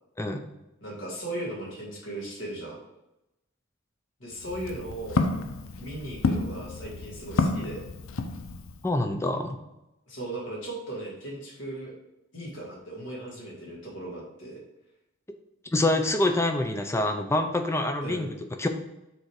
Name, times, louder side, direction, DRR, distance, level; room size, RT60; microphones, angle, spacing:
voice 1, 0.8-2.8 4.2-5.3 5.8-7.8 10.1-11.9 12.3-14.6 18.0-18.3, right 1 dB, 65° left, -3 dB, 2.3 m, -37 dB
Walk footsteps, 4.3-8.9, left 3 dB, 90° left, 0.6 m, -30 dB
voice 2, 8.8-9.6 15.7-18.3 18.6-18.7, left 1 dB, 15° left, 6 dB, 0.5 m, -26 dB
6.7 x 3.9 x 4.8 m, 0.92 s
head